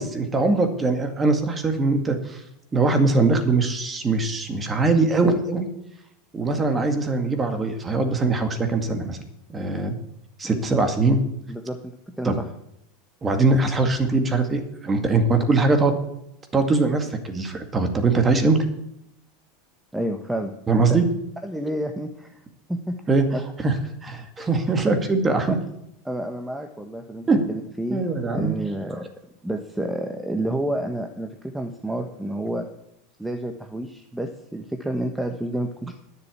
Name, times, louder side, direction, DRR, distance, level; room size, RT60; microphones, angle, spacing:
voice 1, 0.0-2.4 2.7-5.7 6.3-9.2 9.5-10.0 10.4-11.2 12.2-12.4 13.2-16.0 16.5-18.6 20.7-21.0 23.1-23.3 23.6-23.7 24.0-25.6 27.3-27.5 27.9-28.6, right 3 dB, 20° right, 6 dB, 2.1 m, -21 dB
voice 2, 10.4-10.8 11.5-12.5 19.9-21.0 21.4-22.4 22.7-23.0 23.3-23.4 24.4-24.5 25.5-25.6 26.0-28.1 28.3-29.0 29.4-32.7 33.2-36.0, right 1 dB, 5° right, 5 dB, 1.2 m, -30 dB
10.5 x 6.9 x 8.5 m, 0.80 s
hypercardioid pair, 100°, 0 cm